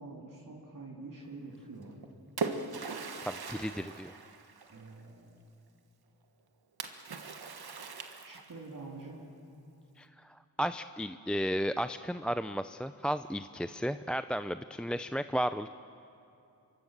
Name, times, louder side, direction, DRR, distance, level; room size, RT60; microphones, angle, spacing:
voice 1, 0.0-2.0 4.7-5.3 8.2-9.2, right 3 dB, 55° right, -3 dB, 3.6 m, -46 dB
Splash splatter, 1.8-5.0 6.8-8.7, right 4 dB, 75° right, 1.6 m, -40 dB
voice 2, 3.2-4.1 10.0-15.7, equal, 5° left, 11 dB, 0.5 m, -34 dB
25.5 x 23.0 x 6.8 m, 2.6 s
cardioid pair, 55°, 38 cm